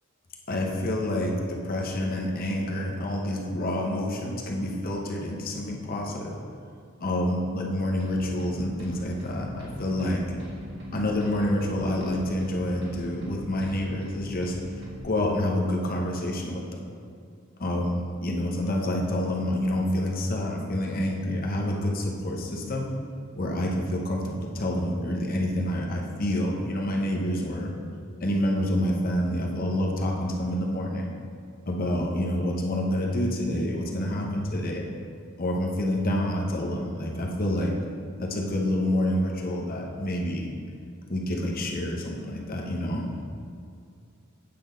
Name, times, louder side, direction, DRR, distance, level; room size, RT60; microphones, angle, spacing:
voice 1, 0.5-6.4 7.0-10.2 10.9-16.6 17.6-22.9 23.4-27.7 28.2-31.1 31.7-34.8 35.4-37.7 38.2-40.4 41.1-43.3, left 1 dB, 45° left, -1 dB, 0.9 m, -28 dB
sound 1, 8.0-15.0, equal, 60° right, 1.8 m, -39 dB
8.5 x 6.0 x 3.9 m, 2.3 s
head